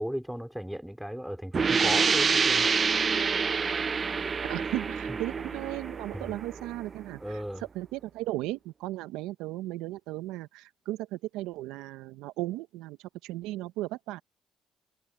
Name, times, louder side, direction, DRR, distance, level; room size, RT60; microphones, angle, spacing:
voice 1, 0.0-2.7 5.1-5.2 6.1-6.3 7.2-7.6, equal, ahead, 3.8 m, -35 dB
sound 1, 1.5-7.0, right 5 dB, 40° right, 0.5 m, -27 dB
voice 2, 4.5-7.4 7.7-13.0 13.2-14.2, right 17 dB, 80° right, 1.2 m, -36 dB
hypercardioid pair, 55°, 0 cm